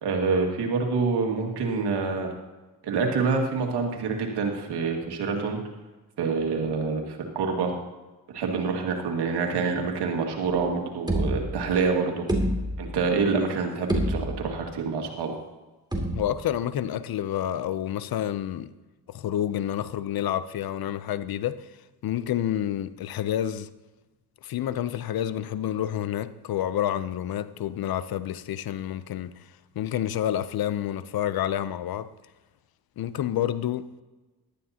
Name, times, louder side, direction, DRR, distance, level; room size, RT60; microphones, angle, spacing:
voice 1, 0.0-2.3 2.8-5.6 6.2-7.7 8.3-12.3 12.8-15.3, right 4 dB, 80° right, 2.1 m, -26 dB
sound 1, 10.5-10.6 11.1-11.8 12.3-13.1 13.5-13.6 13.9-14.7 15.9-16.6, equal, 10° right, 2.8 m, -28 dB
voice 2, 16.1-18.7 19.1-21.7 22.0-23.7 24.4-29.5 29.8-32.1 33.0-33.9, left 11 dB, 65° left, 0.7 m, -29 dB
14.5 x 12.0 x 2.9 m
cardioid pair, 65°, 40 cm